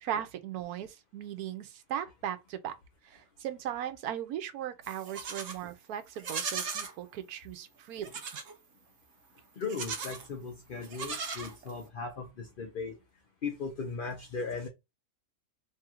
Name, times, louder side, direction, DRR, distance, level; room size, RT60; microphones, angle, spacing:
voice 1, 0.0-2.7 3.0-8.1, right 10 dB, 85° right, 1.1 m, -38 dB
Livestock farm animals working animals, 4.8-5.6 6.1-6.9 8.0-8.5 9.6-10.3 10.8-11.9, right 5 dB, 60° right, 1.2 m, -38 dB
voice 2, 9.6-13.0 13.4-14.7, left 4 dB, 45° left, 0.7 m, -37 dB
3.1 x 2.4 x 4.3 m
omnidirectional pair, 1.6 m